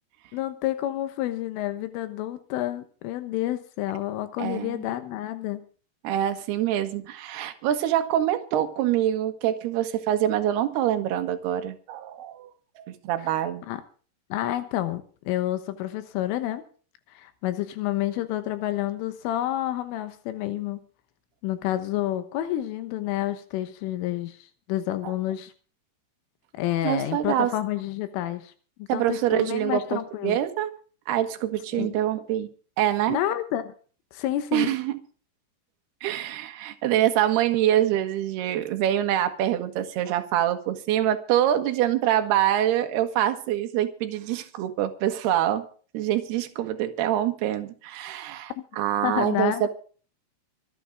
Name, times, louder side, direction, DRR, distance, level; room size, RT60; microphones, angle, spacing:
voice 1, 0.3-5.6 13.3-13.8 14.3-16.6 17.2-20.8 21.4-25.5 26.5-28.5 28.9-30.4 31.7-31.9 33.1-33.7 34.1-34.7 48.6-48.7 49.0-49.6, left 13 dB, 85° left, 10 dB, 3.7 m, -29 dB
voice 2, 4.4-4.9 6.0-12.5 12.9-13.6 25.0-25.1 26.8-27.5 28.9-30.7 31.1-32.5 32.8-33.2 34.5-35.0 36.0-45.6 45.9-49.7, right 11 dB, 65° right, 7 dB, 3.1 m, -25 dB
25.5 x 10.0 x 3.7 m, 0.40 s
omnidirectional pair, 5.7 m